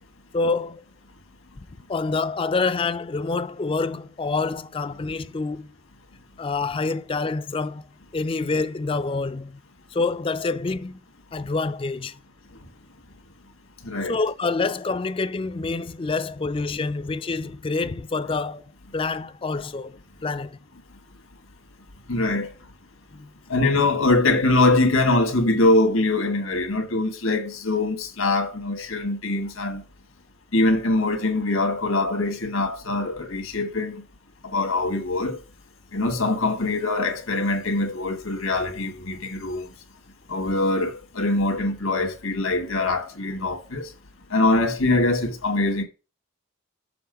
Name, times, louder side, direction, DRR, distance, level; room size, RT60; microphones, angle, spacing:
voice 1, 0.3-0.8 1.6-5.7 6.4-7.8 8.1-9.6 9.9-11.0 11.3-12.2 14.1-18.6 18.9-20.6 23.1-23.3, left 3 dB, 25° left, 0.3 m, -27 dB
voice 2, 13.8-14.2 22.1-22.5 23.5-29.8 30.5-34.0 34.4-35.4 35.9-39.7 40.3-43.9 44.3-45.8, left 2 dB, 85° left, 1.6 m, -23 dB
6.9 x 3.6 x 5.1 m
head